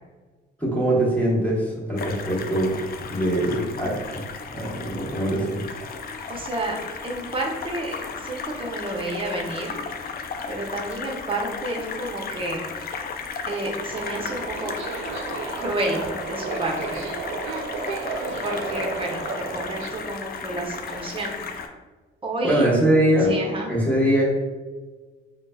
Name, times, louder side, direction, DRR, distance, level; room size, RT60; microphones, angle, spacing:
voice 1, 0.6-2.8 3.1-4.2 4.5-5.6 22.4-23.3 23.7-24.2, right 1 dB, 5° left, -5 dB, 1.3 m, -22 dB
sound 1, 2.0-21.7, left 5 dB, 50° left, 0.4 m, -35 dB
voice 2, 6.3-6.8 7.0-9.8 10.5-12.7 13.5-14.7 15.6-17.1 18.4-21.4 22.2-22.7 23.2-23.7, right 2 dB, 25° right, 0 dB, 0.8 m, -30 dB
Subway metro underground, 13.9-19.9, right 4 dB, 90° right, 0.4 m, -32 dB
5.0 x 2.0 x 2.2 m, 1.3 s
cardioid pair, 90°, 20 cm